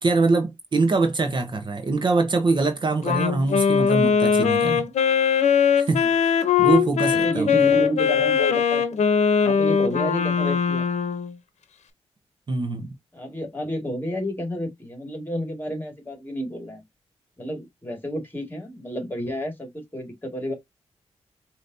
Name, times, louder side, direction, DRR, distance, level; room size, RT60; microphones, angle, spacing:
voice 1, 0.0-4.9 5.8-6.1 6.6-7.5 12.5-12.9, right 3 dB, 40° right, 0.9 m, -23 dB
Wind instrument woodwind instrument, 3.0-11.3, left 7 dB, 75° left, 0.8 m, -21 dB
voice 2, 7.2-9.0 9.4-10.9 13.1-16.8 17.4-20.5, equal, 15° left, 2.1 m, -30 dB
5.0 x 2.8 x 2.7 m
cardioid pair, 85°, 12 cm